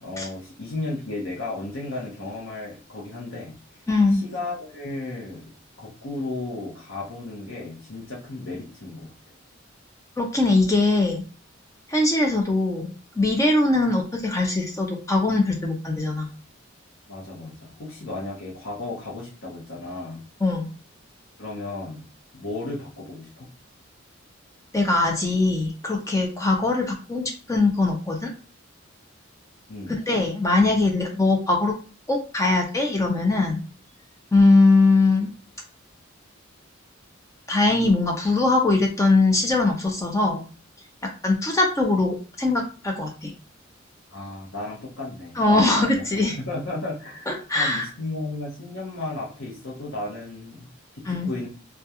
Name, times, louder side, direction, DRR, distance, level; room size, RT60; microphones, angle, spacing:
voice 1, 0.0-3.6 4.1-5.5 5.8-9.1 17.1-20.2 21.4-22.1 22.3-23.5 29.7-30.0 44.1-46.0 46.4-51.5, left 2 dB, 75° left, -4 dB, 0.7 m, -34 dB
voice 2, 3.9-4.2 10.2-11.2 11.9-16.3 20.4-20.7 24.7-28.3 30.1-31.7 32.1-33.6 34.3-35.3 37.5-40.4 41.2-43.3 45.4-46.4 47.3-47.8 51.1-51.3, left 2 dB, 15° left, 1 dB, 0.4 m, -21 dB
2.3 x 2.3 x 2.7 m, 0.37 s
head